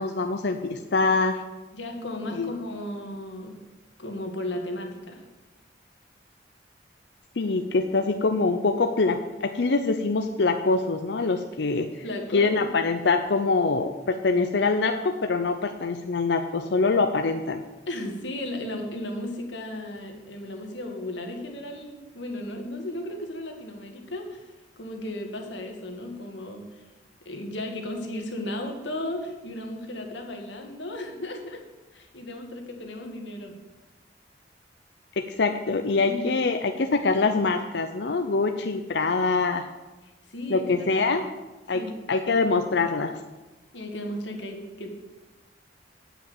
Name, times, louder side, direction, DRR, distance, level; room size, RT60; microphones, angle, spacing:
voice 1, 0.0-1.4 2.3-2.5 7.4-12.0 12.3-17.6 35.2-39.7 40.5-41.2 41.7-41.8 42.1-43.1, left 3 dB, 70° left, 6 dB, 0.6 m, -24 dB
voice 2, 1.7-3.6 4.0-5.2 12.0-12.7 17.9-26.9 27.3-31.6 31.9-33.5 36.1-36.4 40.0-41.2 41.7-41.9 43.7-44.9, left 1 dB, 85° left, 3 dB, 1.8 m, -35 dB
9.5 x 5.8 x 7.8 m, 1.1 s
head